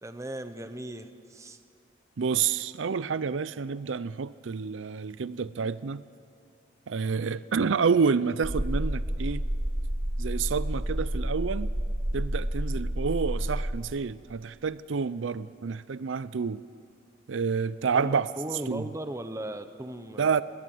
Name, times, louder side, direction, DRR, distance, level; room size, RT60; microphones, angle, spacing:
voice 1, 0.0-1.6 17.9-20.4, right 1 dB, 15° right, 9 dB, 0.9 m, -37 dB
voice 2, 2.2-6.0 6.9-9.5 10.2-11.7 12.1-16.6 17.3-18.3 18.7-18.9 20.2-20.4, right 5 dB, 85° right, 16 dB, 0.5 m, -29 dB
sound 1, 8.4-13.8, right 1 dB, 40° right, 1.5 m, -30 dB
20.0 x 19.0 x 7.9 m, 2.3 s
head